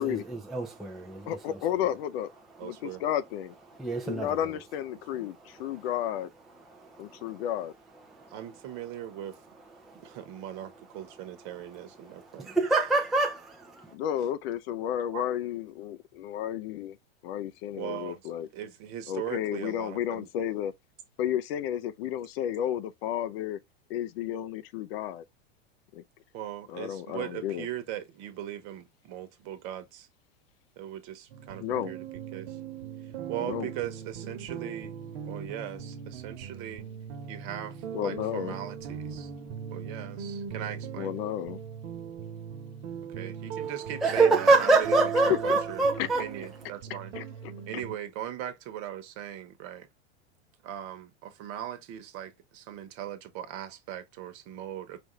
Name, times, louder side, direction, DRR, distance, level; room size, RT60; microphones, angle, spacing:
voice 1, 0.0-1.6 3.8-4.4 6.7-7.4 8.2-8.3 9.8-10.0 12.1-13.9 44.0-46.3, right 3 dB, ahead, 0.5 m, -26 dB
voice 2, 1.3-2.3 2.6-3.5 4.0-6.3 7.0-7.7 13.9-17.0 17.2-18.5 19.1-20.7 21.2-23.6 23.9-25.2 25.9-26.0 26.7-27.7 31.6-31.9 33.4-33.7 37.9-38.6 41.0-41.6 45.5-45.6 46.0-46.1 47.2-47.3, left 10 dB, 60° left, 0.6 m, -32 dB
voice 3, 2.6-3.0 5.1-5.3 8.3-9.4 10.0-12.5 15.1-15.2 17.7-18.2 18.5-20.3 26.3-30.1 30.8-32.0 32.3-32.6 33.0-34.9 35.2-36.9 37.3-39.3 39.7-41.2 43.1-45.9 46.2-47.1 47.7-49.9 50.6-55.0, right 11 dB, 50° right, 1.2 m, -39 dB
sound 1, 31.3-48.0, right 7 dB, 70° right, 1.2 m, -39 dB
5.0 x 2.6 x 3.1 m
hypercardioid pair, 125°, 34 cm